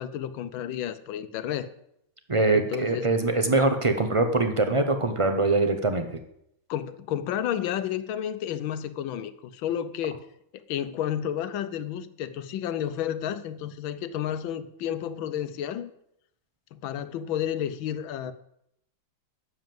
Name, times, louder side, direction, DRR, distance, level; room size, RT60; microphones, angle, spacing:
voice 1, 0.0-1.7 2.5-3.1 6.7-10.2 10.7-15.9 16.7-18.3, left 10 dB, 85° left, 13 dB, 1.5 m, -31 dB
voice 2, 2.3-6.2, right 2 dB, 35° right, 6 dB, 0.5 m, -23 dB
9.7 x 7.2 x 7.7 m, 0.75 s
omnidirectional pair, 2.1 m